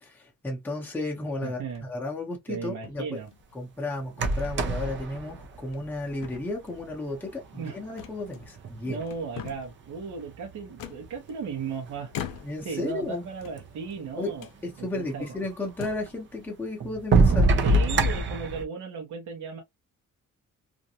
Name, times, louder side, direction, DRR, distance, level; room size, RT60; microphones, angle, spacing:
voice 1, 0.0-3.2 3.5-9.0 12.4-13.2 14.2-14.3 14.6-17.5, left 2 dB, 5° left, 0.7 m, -33 dB
voice 2, 1.4-1.9 2.5-3.3 7.5-7.8 8.9-12.4 12.6-14.5 14.8-15.4 17.6-19.6, right 5 dB, 60° right, 0.8 m, -36 dB
sound 1, 1.6-2.0 2.8-3.6 4.3-4.6 5.0-5.1 5.6-6.0 6.2-6.9 8.0-8.7 9.0-9.8 10.8-11.6 12.1-12.8 13.3-14.0 14.4-14.6 15.2-15.3 15.7-16.2, left 9 dB, 90° left, 0.6 m, -42 dB
sound 2, 4.1-6.4 7.5-7.6 8.2-9.3 10.0-10.8 11.6-11.7 11.9-12.0 12.6-12.7 12.9-13.7 15.3-15.4 16.1-16.2 16.8-18.6, right 2 dB, 35° right, 0.5 m, -24 dB
2.5 x 2.2 x 2.7 m
wide cardioid pair, 180°, 32 cm